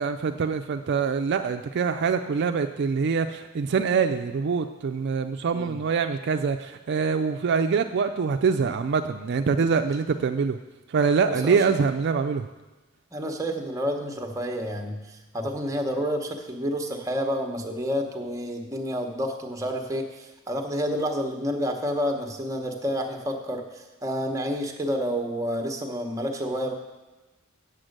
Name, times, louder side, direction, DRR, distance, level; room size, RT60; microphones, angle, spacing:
voice 1, 0.0-10.6 10.9-12.5, right 5 dB, 50° right, 7 dB, 0.4 m, -24 dB
voice 2, 11.3-11.6 13.1-26.7, equal, 15° right, 3 dB, 0.9 m, -29 dB
8.0 x 7.6 x 6.5 m, 1.1 s
head